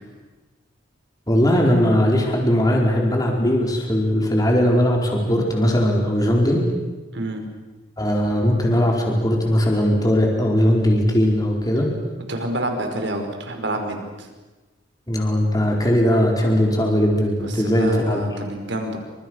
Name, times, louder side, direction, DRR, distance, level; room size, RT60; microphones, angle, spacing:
voice 1, 1.3-6.6 8.0-11.9 15.1-18.2, equal, 20° left, 0 dB, 4.7 m, -19 dB
voice 2, 12.3-14.3 17.6-19.0, right 1 dB, 65° right, 4 dB, 5.3 m, -28 dB
29.5 x 27.0 x 6.5 m, 1.2 s
head